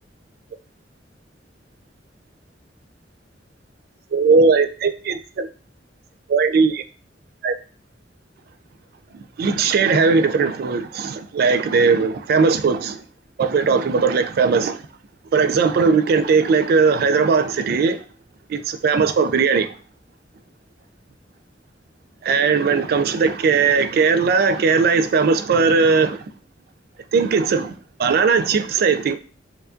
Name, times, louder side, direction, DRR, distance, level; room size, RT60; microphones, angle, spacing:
voice 1, 4.1-5.5 6.3-6.8 7.4-7.6 9.4-13.0 13.4-14.8 15.3-18.0 18.5-19.7 22.2-26.2 27.1-27.7 28.0-29.2, right 5 dB, 55° right, 0.3 m, -18 dB
4.5 x 2.4 x 2.5 m
head